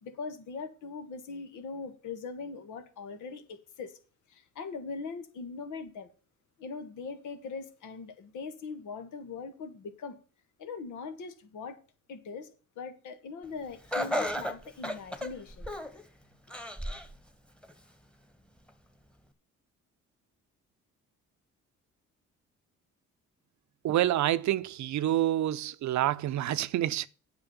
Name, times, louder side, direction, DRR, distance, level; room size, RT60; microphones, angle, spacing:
voice 1, 0.0-4.0 4.3-6.1 6.6-10.2 10.6-11.8 12.1-15.7, left 4 dB, 80° left, 1.8 m, -41 dB
Laughter, 13.9-16.0 16.5-17.1 17.6-17.7 18.7-18.8, left 1 dB, 5° left, 1.4 m, -33 dB
voice 2, 23.8-27.1, right 13 dB, 70° right, 0.7 m, -27 dB
8.9 x 6.2 x 7.1 m
cardioid pair, 90°, 30 cm